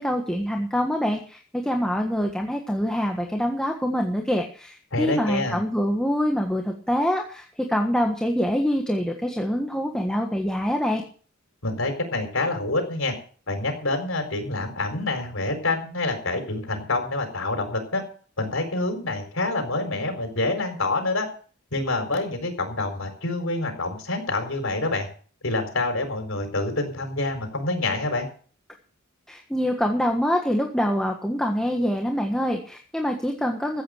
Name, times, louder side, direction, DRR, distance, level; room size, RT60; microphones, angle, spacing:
voice 1, 0.0-11.0 29.3-33.8, equal, 5° left, 1 dB, 1.5 m, -25 dB
voice 2, 4.9-5.6 11.6-13.1 13.5-18.0 18.4-21.3 21.7-25.1 25.4-28.3, left 2 dB, 70° left, 5 dB, 4.5 m, -27 dB
15.0 x 8.7 x 6.6 m, 0.43 s
head